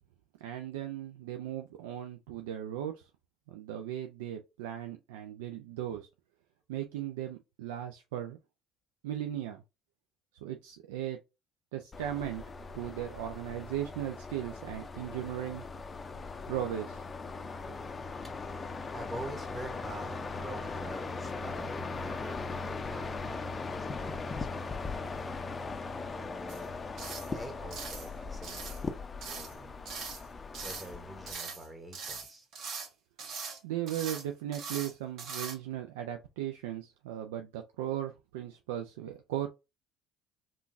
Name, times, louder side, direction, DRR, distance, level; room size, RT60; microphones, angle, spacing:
voice 1, 0.4-3.0 3.5-6.1 6.7-8.4 9.0-9.6 10.4-11.2 11.7-12.4 12.7-15.6 16.5-17.0 33.6-39.5, right 11 dB, 85° right, 0.3 m, -37 dB
sound 1, 11.9-31.3, left 4 dB, 30° left, 0.5 m, -39 dB
voice 2, 18.4-25.3 26.1-26.7 27.2-29.0 29.2-29.8 30.6-32.5, right 1 dB, 20° right, 0.9 m, -46 dB
sound 2, 26.5-26.7 27.0-27.3 27.7-28.1 28.4-28.8 29.2-29.5 29.9-30.2 30.5-30.9 31.3-31.7 31.9-32.9 33.2-33.6 33.9-34.2 34.5-34.9 35.2-35.5, right 5 dB, 60° right, 1.2 m, -41 dB
3.6 x 2.3 x 2.5 m
hypercardioid pair, 70°, 0 cm